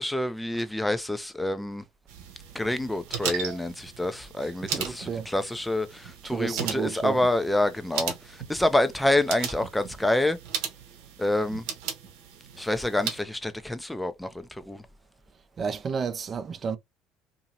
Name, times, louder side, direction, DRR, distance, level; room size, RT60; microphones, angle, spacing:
voice 1, 0.0-1.8 2.5-10.4 11.2-11.6 12.6-14.8, left 1 dB, 5° left, 0.6 m, -27 dB
sound 1, 2.1-13.2, right 7 dB, 70° right, 0.8 m, -37 dB
voice 2, 4.7-5.3 6.2-7.2 15.6-16.8, right 6 dB, 40° right, 0.5 m, -31 dB
2.8 x 2.6 x 2.8 m
hypercardioid pair, 60°, 0 cm